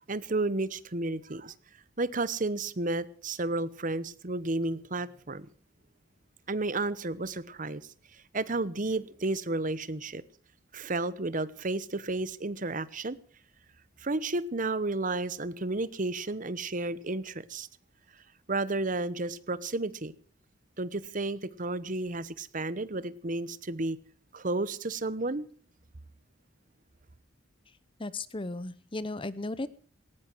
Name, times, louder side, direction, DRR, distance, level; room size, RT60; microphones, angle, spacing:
voice 1, 0.1-1.5 2.0-5.5 6.5-7.8 8.3-10.2 10.7-13.2 14.0-17.7 18.5-20.1 20.8-24.0 24.3-25.5, right 2 dB, 40° right, 1.0 m, -32 dB
voice 2, 28.0-29.7, left 2 dB, 25° left, 0.8 m, -35 dB
18.5 x 16.0 x 4.6 m
head